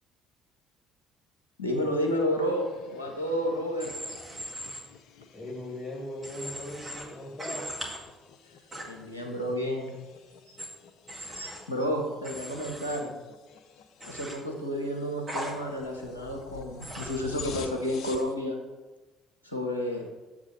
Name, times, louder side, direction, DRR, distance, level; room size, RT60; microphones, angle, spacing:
voice 1, 1.6-3.9 8.9-9.9 11.2-13.1 14.0-18.6 19.4-20.1, equal, 85° left, 1 dB, 0.9 m, -31 dB
sound 1, 2.0-18.3, left 7 dB, 55° left, 0.5 m, -50 dB
Human voice / Train, 3.8-4.8 6.2-7.0 7.4-8.0 8.7-8.8 10.6-10.7 11.1-11.6 12.2-13.0 14.0-14.3 15.3-15.5 16.8-17.2 18.0-18.2, equal, 25° right, 1.9 m, -39 dB
voice 2, 5.3-7.8, left 1 dB, 20° left, -2 dB, 2.1 m, -39 dB
sound 2, 10.1-10.6 11.3-12.9 13.6-13.7, right 4 dB, 75° right, 0.6 m, -50 dB
7.2 x 3.7 x 6.4 m, 1.2 s
figure-of-eight pair, 50°, 0 cm